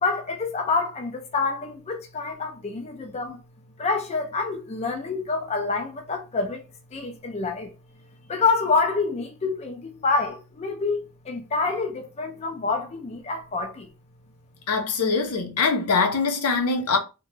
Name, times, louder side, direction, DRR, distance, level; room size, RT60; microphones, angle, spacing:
voice 1, 0.0-3.4 3.8-6.6 6.9-7.7 8.3-11.0 11.2-13.9, left 4 dB, 30° left, 0.4 m, -27 dB
voice 2, 14.7-17.0, left 4 dB, 85° left, 0.6 m, -23 dB
2.9 x 2.1 x 3.2 m
head